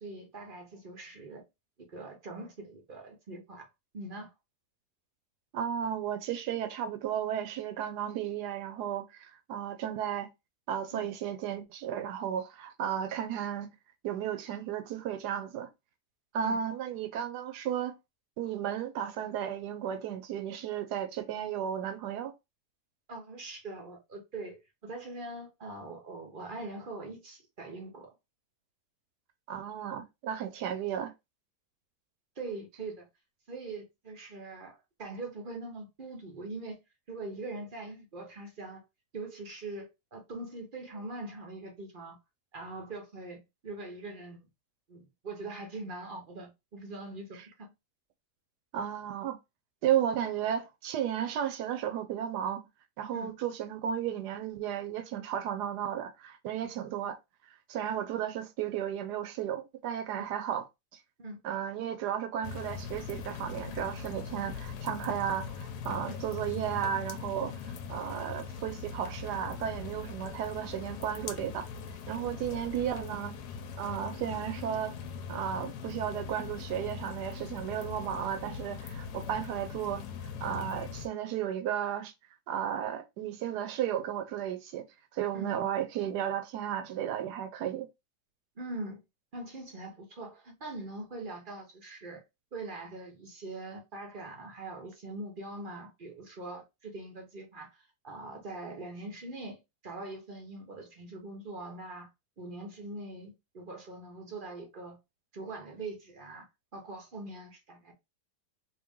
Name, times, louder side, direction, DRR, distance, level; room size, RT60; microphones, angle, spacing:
voice 1, 0.0-1.4 1.9-3.7 3.9-4.3 10.9-11.1 16.4-16.6 23.1-24.6 24.8-28.1 32.4-33.0 33.5-36.8 37.1-38.8 39.1-42.2 42.5-44.5 44.9-47.7 53.1-53.3 60.1-60.2 61.2-61.4 66.1-66.2 72.2-72.3 85.3-85.5 88.6-89.0 89.3-92.2 92.5-102.1 102.4-105.0 105.3-106.5 106.7-107.9, right 2 dB, 40° right, 0.9 m, -42 dB
voice 2, 5.5-10.3 10.7-13.7 14.0-15.7 16.3-17.9 18.4-22.3 29.5-31.1 48.7-49.4 49.8-52.6 53.0-57.2 57.7-60.6 61.4-71.7 72.1-73.4 73.8-75.0 75.3-80.0 80.4-82.1 82.5-84.8 85.1-87.9, right 9 dB, 85° right, 1.2 m, -34 dB
sound 1, 62.4-81.1, left 6 dB, 80° left, 1.2 m, -41 dB
3.0 x 2.9 x 3.5 m
omnidirectional pair, 1.7 m